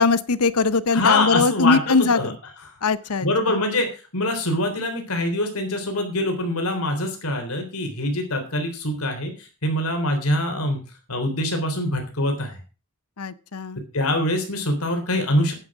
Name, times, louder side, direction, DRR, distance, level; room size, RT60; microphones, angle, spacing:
voice 1, 0.0-2.3 2.8-3.6 13.2-13.8, left 4 dB, 85° left, 16 dB, 0.8 m, -21 dB
voice 2, 0.9-2.3 3.2-9.3 9.6-10.8 11.1-12.6 13.9-15.5, left 1 dB, 70° left, 4 dB, 3.6 m, -24 dB
9.8 x 9.6 x 6.0 m, 0.35 s
head